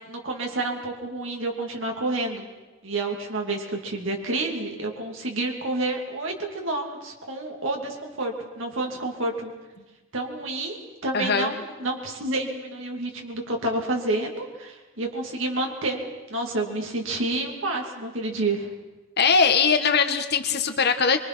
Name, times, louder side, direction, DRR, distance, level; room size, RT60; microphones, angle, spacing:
voice 1, 0.0-2.4 2.8-9.5 10.1-16.0 16.3-18.7, right 2 dB, 70° right, 1 dB, 2.8 m, -29 dB
voice 2, 11.1-11.5 19.2-21.2, left 5 dB, 55° left, 7 dB, 1.5 m, -21 dB
24.5 x 24.0 x 6.2 m, 1.2 s
head